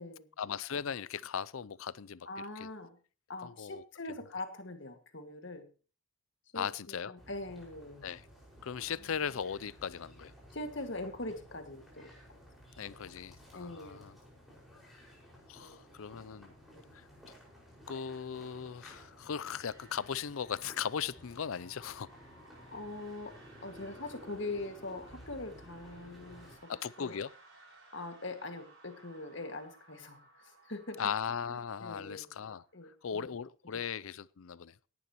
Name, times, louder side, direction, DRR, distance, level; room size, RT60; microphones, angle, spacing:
voice 1, 0.4-2.3 2.6-2.7 3.4-3.8 6.5-7.1 8.0-8.2 8.6-10.3 12.8-14.1 15.5-16.5 16.9-17.0 17.9-22.1 26.7-27.3 31.0-32.6 33.0-34.7, left 7 dB, 75° left, 0.5 m, -38 dB
voice 2, 2.3-3.0 3.3-5.7 6.5-8.1 10.5-12.1 13.5-14.1 15.6-16.0 16.7-16.9 22.7-27.2 27.9-31.0 31.5-32.3 32.7-33.2, left 2 dB, 55° left, 2.0 m, -43 dB
sound 1, 7.2-26.6, equal, ahead, 5.4 m, -55 dB
sound 2, 19.3-33.0, right 2 dB, 60° right, 6.2 m, -60 dB
18.0 x 11.0 x 3.0 m
head